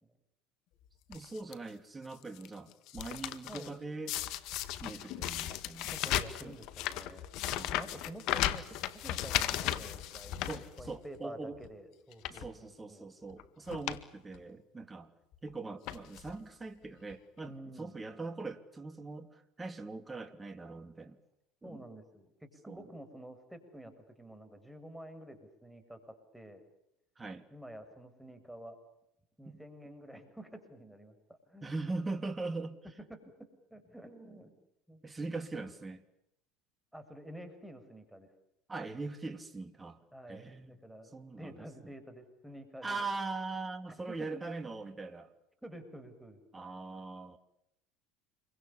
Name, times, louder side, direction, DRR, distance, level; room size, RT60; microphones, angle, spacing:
sound 1, 1.1-1.5 2.1-3.7 4.1-11.2 11.6-11.7 12.1-12.5 13.3-13.4 13.7-14.0 14.3-14.4 15.3-15.5 15.9-16.4 17.1-17.2 17.4-17.5, left 13 dB, 60° left, 1.8 m, -36 dB
voice 1, 1.1-4.2 4.8-5.9 6.4-6.6 7.5-8.0 10.5-11.6 12.3-15.1 15.4-17.5 17.8-21.2 21.6-21.8 22.7-22.9 27.2-27.4 29.5-29.6 31.6-32.8 35.0-36.0 38.7-40.0 40.3-40.9 41.1-41.5 42.8-45.3 46.5-47.4, right 3 dB, 20° right, 7 dB, 3.0 m, -41 dB
voice 2, 3.5-3.8 5.9-7.3 7.7-13.1 17.4-18.0 21.6-26.6 27.5-28.8 29.4-32.0 33.1-34.6 34.9-35.4 36.9-38.3 40.1-43.0 44.1-44.4 45.6-46.4, right 1 dB, 5° right, 8 dB, 6.5 m, -50 dB
28.0 x 24.5 x 7.1 m, 0.80 s
hypercardioid pair, 80°, 0 cm